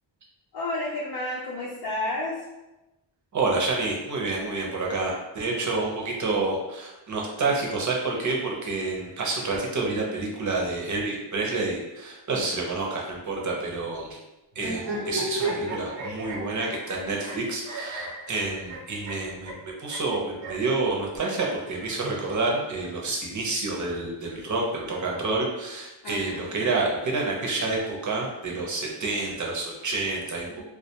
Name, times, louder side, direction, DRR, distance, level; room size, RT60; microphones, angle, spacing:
voice 1, 0.5-2.4 26.0-26.5 30.5-30.6, left 2 dB, 55° left, -5 dB, 0.5 m, -31 dB
voice 2, 3.3-14.2 14.6-30.6, right 3 dB, 40° right, -1 dB, 0.7 m, -28 dB
sound 1, 14.5-20.7 21.7-22.8, right 2 dB, 90° right, 0.9 m, -34 dB
2.3 x 2.2 x 2.7 m, 1.0 s
cardioid pair, 80°, 45 cm